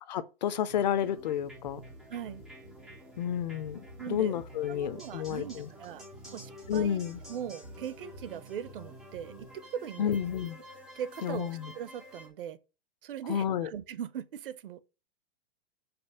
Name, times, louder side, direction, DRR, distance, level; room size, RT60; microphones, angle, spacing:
voice 1, 0.1-1.8 3.2-5.7 6.7-7.2 10.0-10.6 11.2-11.7 13.3-13.7, left 9 dB, 45° left, 0.6 m, -31 dB
sound 1, 0.7-12.3, equal, ahead, 0.3 m, -49 dB
voice 2, 2.1-2.4 4.0-4.3 4.7-6.0 6.3-7.0 7.3-10.2 10.9-12.6 13.0-14.8, right 9 dB, 65° right, 0.8 m, -40 dB
5.2 x 5.0 x 5.4 m
supercardioid pair, 175°, 29 cm